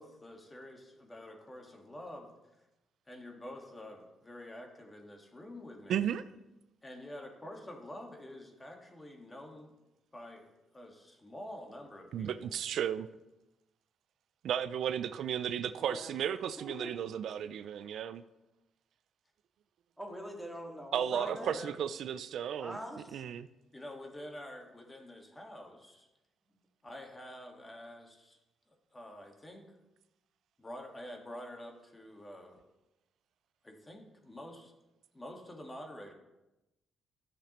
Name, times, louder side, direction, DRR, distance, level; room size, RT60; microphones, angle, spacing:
voice 1, 0.0-2.3 3.1-6.1 6.8-9.8 10.1-12.6 21.1-21.8 23.7-26.1 26.8-28.4 28.9-29.6 30.6-32.6 33.6-34.7 35.1-36.1, left 1 dB, 20° left, 1.6 m, -47 dB
voice 2, 5.9-6.2 12.1-13.1 14.4-18.2 20.9-22.8 23.1-23.5, right 9 dB, 70° right, 0.3 m, -34 dB
voice 3, 16.6-16.9 20.0-21.6 22.6-23.2, equal, ahead, 1.8 m, -43 dB
11.5 x 6.7 x 3.0 m
cardioid pair, 90°, 0 cm